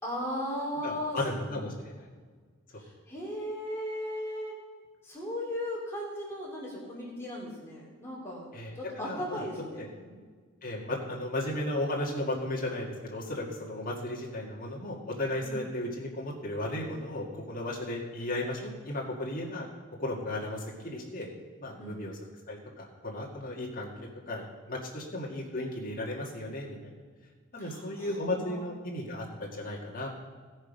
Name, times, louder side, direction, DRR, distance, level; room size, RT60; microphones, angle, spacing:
voice 1, 0.0-1.2 1.5-1.6 2.8-4.6 5.0-8.5 8.7-10.2 15.4-15.6 21.8-22.0 27.6-28.7, left 1 dB, 10° left, -6 dB, 2.9 m, -37 dB
voice 2, 0.8-2.1 8.5-9.5 9.8-9.9 10.6-19.7 20.0-21.3 21.6-22.2 22.5-23.9 24.3-26.9 27.5-30.1, left 1 dB, 40° left, -3 dB, 2.0 m, -35 dB
16.5 x 6.4 x 5.2 m, 1.5 s
head